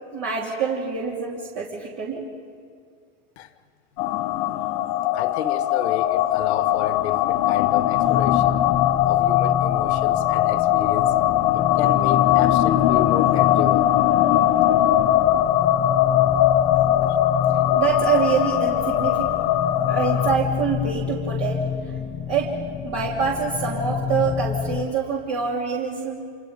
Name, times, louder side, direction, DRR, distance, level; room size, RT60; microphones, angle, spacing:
voice 1, 0.1-2.3 14.6-14.8 17.7-19.3 19.8-22.0 22.3-22.6 22.8-26.3, right 5 dB, 50° right, -3 dB, 3.1 m, -25 dB
sound 1, 4.0-20.4, left 12 dB, 60° left, 1.1 m, -20 dB
voice 2, 5.1-8.6 9.1-11.1 11.5-14.2 17.1-17.2, left 10 dB, 75° left, 11 dB, 1.5 m, -32 dB
sound 2, 7.9-24.9, left 7 dB, 25° left, 0.7 m, -29 dB
28.0 x 27.5 x 5.3 m, 2.2 s
supercardioid pair, 115°, 33 cm